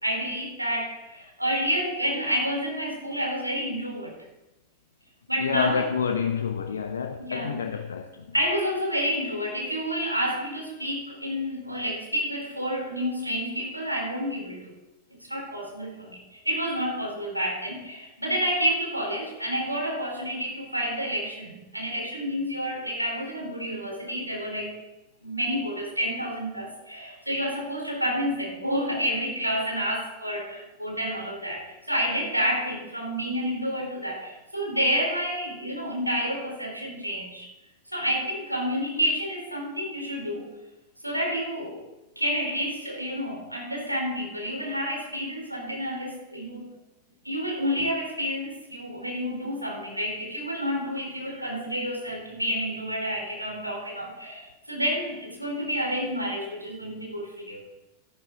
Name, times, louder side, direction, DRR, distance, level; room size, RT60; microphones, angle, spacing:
voice 1, 0.0-4.2 5.3-5.8 7.2-7.6 8.3-14.7 15.3-24.8 25.2-37.5 37.9-40.5 41.0-41.8 42.2-46.7 47.2-57.6, equal, 90° right, 3.9 m, -29 dB
voice 2, 5.4-8.3, left 6 dB, 70° left, 0.8 m, -28 dB
13.5 x 12.0 x 3.9 m
figure-of-eight pair, 90°, 0 cm